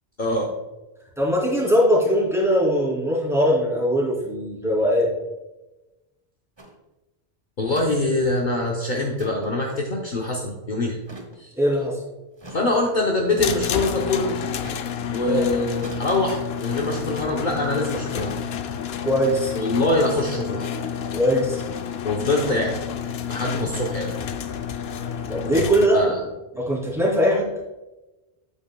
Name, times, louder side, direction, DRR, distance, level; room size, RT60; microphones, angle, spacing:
voice 1, 0.2-0.5 7.6-11.0 11.4-11.5 12.5-14.4 15.1-18.4 19.5-20.7 22.0-22.8 23.3-24.1 25.9-26.2, left 2 dB, 50° left, -1 dB, 1.0 m, -24 dB
voice 2, 1.2-5.1 11.6-12.0 15.3-15.5 19.0-19.5 21.1-21.6 25.3-26.0 26.5-27.5, equal, 5° right, -6 dB, 2.8 m, -21 dB
sound 1, 6.6-6.8 7.7-7.9 8.2-8.3 9.0-9.5 11.0-11.4 12.4-12.6 13.4-13.9 14.6-14.9 15.8-16.0, right 1 dB, 25° right, 1.0 m, -42 dB
sound 2, 13.4-25.9, left 8 dB, 75° left, 0.8 m, -30 dB
8.9 x 8.4 x 2.2 m, 1.1 s
omnidirectional pair, 1.0 m